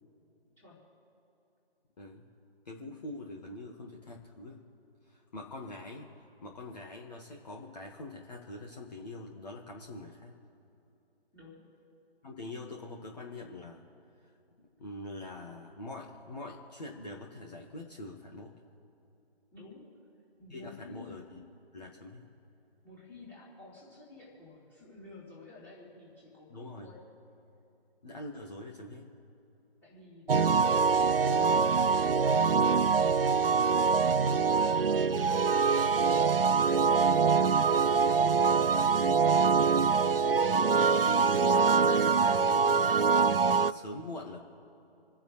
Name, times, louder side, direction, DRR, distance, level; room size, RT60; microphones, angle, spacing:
voice 1, 0.6-0.9 11.3-11.8 19.5-19.9 20.4-21.2 22.8-27.1 29.8-36.8 37.2-39.5, left 2 dB, 5° left, -7 dB, 3.9 m, -53 dB
voice 2, 2.7-4.6 5.1-6.1 6.4-10.4 12.2-13.9 14.2-14.3 14.8-18.5 20.5-21.5 21.7-22.3 26.5-26.9 28.0-29.1 30.3-30.6 38.1-38.6 40.5-44.4, left 2 dB, 40° left, -1 dB, 1.9 m, -44 dB
sound 1, 30.3-43.7, right 5 dB, 65° right, 0.6 m, -24 dB
28.5 x 10.0 x 3.3 m, 2.9 s
figure-of-eight pair, 155°, 31 cm